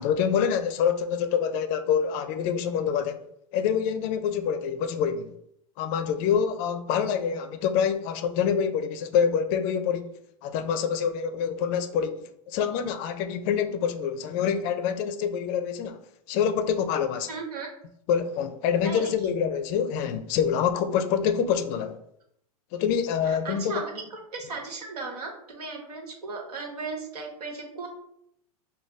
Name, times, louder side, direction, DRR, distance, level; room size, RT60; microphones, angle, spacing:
voice 1, 0.0-3.2 3.5-5.4 5.8-16.0 16.3-17.3 18.1-22.0 22.7-23.8, left 7 dB, 45° left, 0.4 m, -26 dB
voice 2, 17.3-17.7 18.8-19.1 23.2-27.9, right 4 dB, 85° right, 1.3 m, -36 dB
4.9 x 2.3 x 3.1 m
hypercardioid pair, 120°, 19 cm